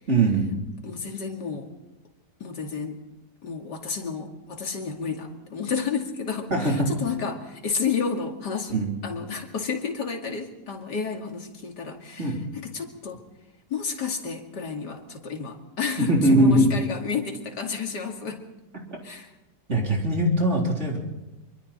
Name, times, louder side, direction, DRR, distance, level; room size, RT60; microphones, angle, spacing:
voice 1, 0.1-0.5 6.5-6.9 8.7-8.9 12.2-12.4 16.0-16.7 19.7-21.0, right 1 dB, 40° right, 0 dB, 4.1 m, -21 dB
voice 2, 0.8-1.7 2.4-3.0 3.4-13.2 13.7-18.4 19.0-19.3, left 5 dB, 85° left, 3 dB, 3.0 m, -31 dB
25.0 x 24.0 x 4.3 m, 1.1 s
omnidirectional pair, 1.8 m